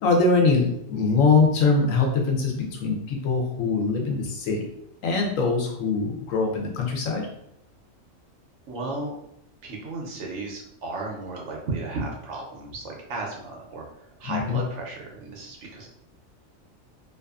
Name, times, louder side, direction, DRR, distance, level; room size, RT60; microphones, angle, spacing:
voice 1, 0.0-4.7 5.0-7.3 14.3-14.6, left 4 dB, 75° left, 0 dB, 1.0 m, -23 dB
voice 2, 8.7-9.1 9.6-15.9, right 3 dB, 65° right, 0 dB, 0.8 m, -34 dB
2.5 x 2.4 x 2.3 m, 0.75 s
omnidirectional pair, 1.4 m